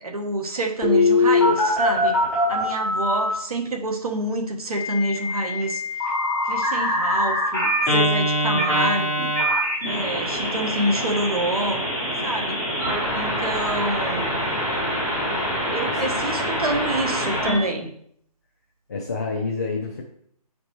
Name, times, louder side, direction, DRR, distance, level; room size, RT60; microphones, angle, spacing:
voice 1, 0.0-2.2 2.5-5.8 6.5-9.3 9.8-11.8 12.2-12.6 13.1-14.3 15.7-17.9, right 1 dB, 70° right, 2 dB, 1.4 m, -27 dB
Telephone, 0.8-3.3 4.7-17.6, left 1 dB, 5° right, 3.1 m, -23 dB
voice 2, 18.9-20.0, left 4 dB, 25° left, 0 dB, 0.5 m, -28 dB
8.8 x 5.1 x 3.0 m, 0.68 s
hypercardioid pair, 165°, 20 cm